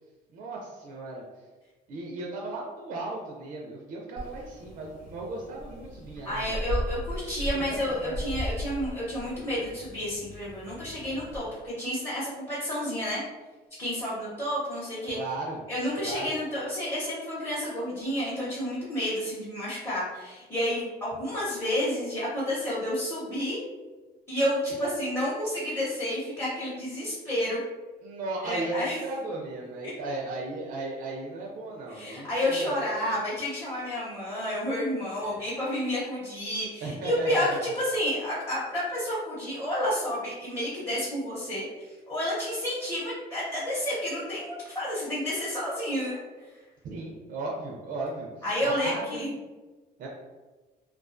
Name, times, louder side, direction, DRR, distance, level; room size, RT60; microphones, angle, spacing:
voice 1, 0.3-1.2 1.9-6.4 7.4-8.3 15.1-15.6 16.0-16.4 28.0-32.8 35.2-35.4 36.8-37.7 46.8-48.3 48.6-49.4 50.0-50.1, right 2 dB, 55° right, -2 dB, 0.4 m, -36 dB
sound 1, 4.2-11.4, equal, 60° left, 0.6 m, -37 dB
voice 2, 6.2-13.2 13.8-15.2 15.7-23.6 24.3-27.6 28.4-29.0 29.8-29.9 31.9-46.2 48.4-49.3, equal, 15° left, -9 dB, 0.8 m, -30 dB
2.3 x 2.3 x 2.4 m, 1.3 s
cardioid pair, 110°, 17 cm